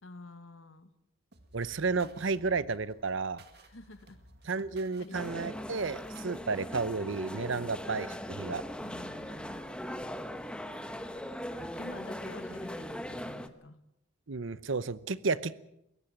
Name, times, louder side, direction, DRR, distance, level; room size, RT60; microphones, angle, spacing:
voice 1, 0.0-0.9 3.5-4.5 5.0-5.4 7.5-7.8 8.8-9.6 11.2-13.8, left 2 dB, 70° left, 11 dB, 1.3 m, -50 dB
sound 1, 1.3-6.4, right 2 dB, 55° right, 2.1 m, -57 dB
voice 2, 1.5-3.4 4.4-8.6 14.3-15.5, right 4 dB, 70° right, 17 dB, 0.8 m, -32 dB
sound 2, 5.1-13.5, equal, 5° left, 1.0 m, -40 dB
Wind instrument woodwind instrument, 7.0-12.9, right 2 dB, 35° right, 3.3 m, -59 dB
21.5 x 18.5 x 7.4 m, 0.80 s
head